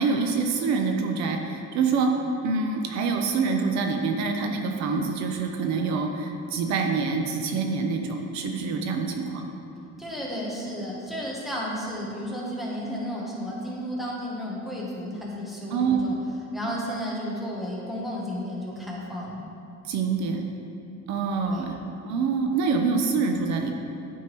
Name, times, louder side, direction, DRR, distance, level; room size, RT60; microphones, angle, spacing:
voice 1, 0.0-2.2 2.4-9.5 15.7-16.1 19.8-20.4 21.1-21.8 22.0-23.7, right 4 dB, 60° right, 4 dB, 0.6 m, -26 dB
voice 2, 10.0-16.2 16.5-19.4 21.4-21.7, equal, ahead, -5 dB, 0.9 m, -33 dB
12.0 x 4.5 x 3.1 m, 2.6 s
cardioid pair, 175°, 31 cm